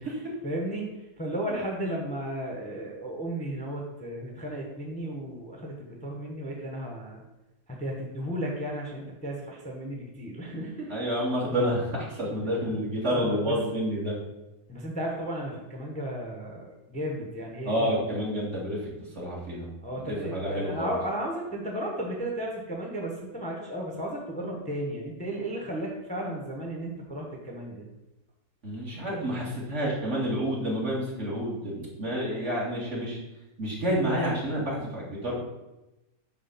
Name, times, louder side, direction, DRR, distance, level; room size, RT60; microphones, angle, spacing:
voice 1, 0.0-0.9 1.2-7.2 7.7-10.9 13.1-13.8 14.7-18.2 19.8-27.8, right 1 dB, 5° left, -1 dB, 1.0 m, -34 dB
voice 2, 10.9-14.2 17.6-18.8 19.2-19.7 20.1-20.9 28.6-33.2 33.6-35.3, equal, 50° right, -4 dB, 2.4 m, -29 dB
8.9 x 3.4 x 5.8 m, 0.99 s
omnidirectional pair, 1.6 m